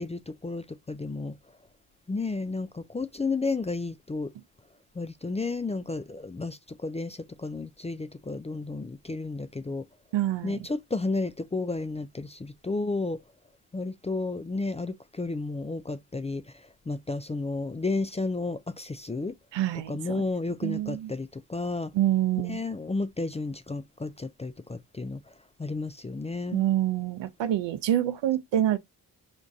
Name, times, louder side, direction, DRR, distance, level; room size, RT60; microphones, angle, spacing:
voice 1, 0.0-1.4 2.1-4.3 5.0-9.8 10.4-13.2 13.7-16.4 16.9-19.3 19.9-21.9 22.5-25.2 25.6-26.6, left 3 dB, 15° left, 0.4 m, -32 dB
voice 2, 10.1-10.7 19.5-20.2 20.6-21.1 21.9-22.6 26.5-28.8, right 12 dB, 75° right, 0.7 m, -26 dB
5.3 x 2.5 x 3.5 m
supercardioid pair, 40°, 44 cm